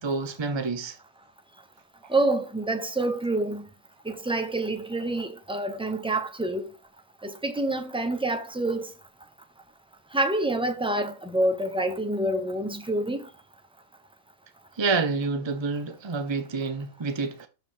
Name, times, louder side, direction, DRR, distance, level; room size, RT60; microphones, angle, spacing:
voice 1, 0.0-1.0 2.0-2.1 14.7-17.5, right 4 dB, 35° right, 0.4 m, -28 dB
voice 2, 2.1-3.7 4.0-6.7 7.2-8.9 10.1-13.3, right 2 dB, 5° right, 0.8 m, -27 dB
6.9 x 5.0 x 5.6 m
omnidirectional pair, 1.3 m